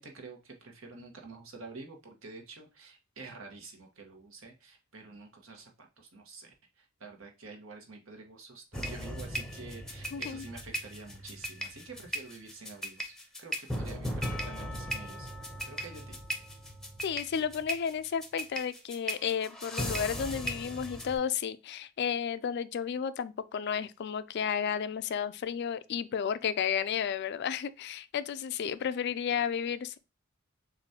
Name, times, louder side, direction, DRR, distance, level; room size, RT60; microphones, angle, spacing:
voice 1, 0.0-16.2, right 3 dB, 75° right, 1.3 m, -48 dB
sound 1, 8.7-21.2, equal, 5° left, 0.7 m, -37 dB
voice 2, 10.1-10.4 17.0-30.0, left 7 dB, 55° left, 0.3 m, -32 dB
6.8 x 2.6 x 2.8 m
head